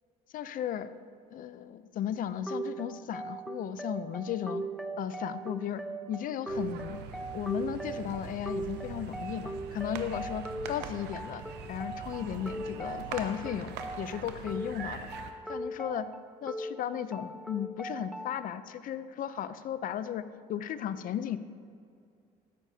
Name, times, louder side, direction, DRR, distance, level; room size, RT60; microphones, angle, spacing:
voice 1, 0.3-0.9 1.3-4.6 5.0-5.8 6.1-7.1 7.3-11.4 11.7-15.0 15.5-16.1 16.4-20.2 20.5-21.4, left 10 dB, 55° left, 13 dB, 0.5 m, -35 dB
sound 1, 2.5-18.5, right 2 dB, ahead, 0.4 m, -40 dB
sound 2, 6.5-15.3, right 6 dB, 85° right, 0.8 m, -43 dB
13.0 x 9.7 x 2.8 m, 2.4 s
cardioid pair, 110°, 17 cm